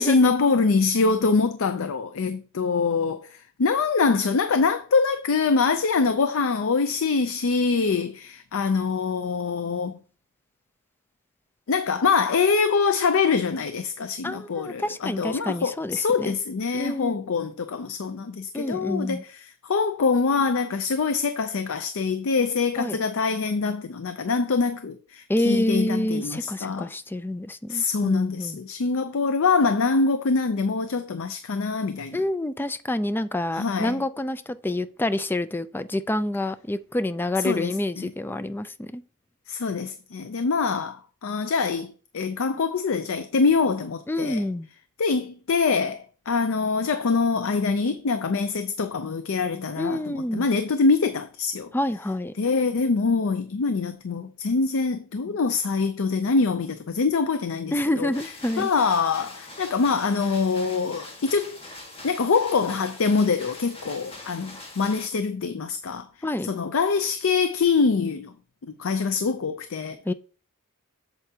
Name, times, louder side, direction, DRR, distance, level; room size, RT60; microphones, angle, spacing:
voice 1, 0.0-10.0 11.7-26.9 27.7-32.2 33.5-34.0 37.4-38.1 39.5-44.4 45.0-51.7 52.4-58.1 58.6-61.6 62.0-66.1 66.4-68.3 68.7-70.0, left 4 dB, 65° left, 0.5 m, -24 dB
voice 2, 14.2-16.3 16.7-17.1 18.5-19.2 22.8-23.0 25.3-28.6 32.1-39.0 44.1-44.7 49.8-50.5 51.7-52.3 57.7-58.7 66.2-66.5 70.1-70.2, left 1 dB, 10° left, 0.3 m, -28 dB
sound 1, 58.1-65.1, left 2 dB, 25° left, 1.6 m, -43 dB
8.0 x 7.0 x 2.8 m
head